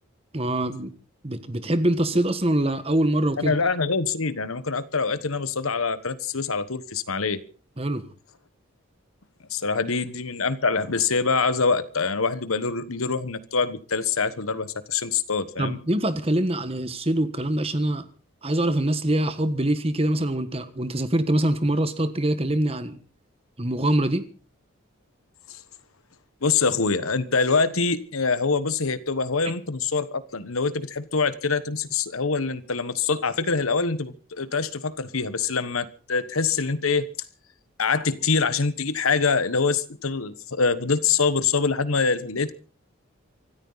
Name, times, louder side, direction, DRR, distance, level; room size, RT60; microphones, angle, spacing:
voice 1, 0.3-0.9 1.2-3.5 7.8-8.1 15.6-18.1 18.4-23.0 23.6-24.2, right 1 dB, 25° right, 1.4 m, -24 dB
voice 2, 3.4-7.4 9.5-15.8 25.5-25.6 26.4-37.1 37.8-42.5, left 4 dB, 80° left, 1.2 m, -25 dB
24.5 x 13.5 x 4.1 m
head